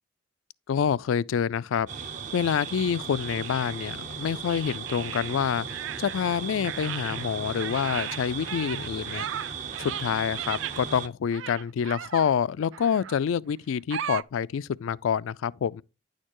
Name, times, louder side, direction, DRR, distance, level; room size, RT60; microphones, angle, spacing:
voice 1, 0.7-1.9 2.3-5.7 6.0-9.3 9.8-15.8, left 7 dB, 75° left, 0.3 m, -27 dB
sound 1, 1.9-11.1, right 6 dB, 40° right, 0.7 m, -37 dB
sound 2, 2.4-3.9 4.5-6.4 6.6-10.8 11.3-12.3 12.7-13.2 13.9-14.2, right 10 dB, 65° right, 0.3 m, -37 dB
9.9 x 6.5 x 3.0 m
head